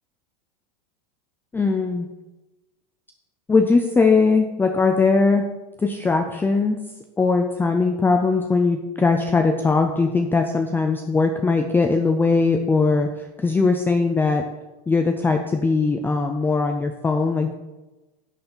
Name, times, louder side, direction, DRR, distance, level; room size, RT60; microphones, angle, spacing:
voice 1, 1.5-2.1 3.5-5.4 5.8-6.8 7.2-14.4 14.9-17.5, left 4 dB, 10° left, 5 dB, 0.5 m, -20 dB
11.0 x 6.8 x 3.9 m, 1.1 s
supercardioid pair, 130°, 20 cm